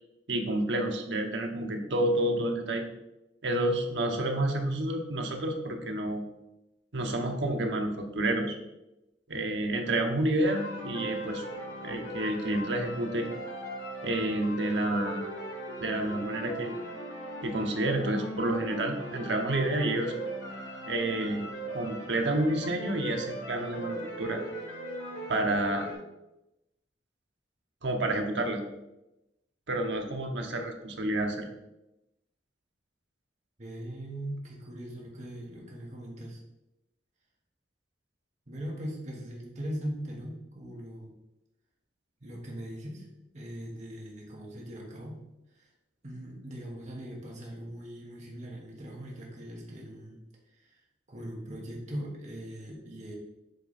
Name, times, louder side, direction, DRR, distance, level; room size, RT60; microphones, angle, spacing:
voice 1, 0.3-2.9 3.4-6.2 6.9-8.5 9.3-11.4 11.8-13.3 14.0-15.3 15.8-16.8 17.4-20.1 20.9-21.5 21.7-24.4 25.3-25.9 27.8-28.6 29.7-31.4, right 1 dB, 80° right, 3 dB, 1.0 m, -29 dB
sound 1, 10.4-25.9, right 1 dB, 90° left, 2.2 m, -39 dB
voice 2, 33.6-36.4 38.5-41.1 42.2-43.1 43.3-45.2 45.5-45.7 46.0-50.2 50.6-50.8 51.1-53.1, right 1 dB, 40° right, -2 dB, 1.4 m, -40 dB
7.9 x 3.4 x 4.2 m, 0.93 s
head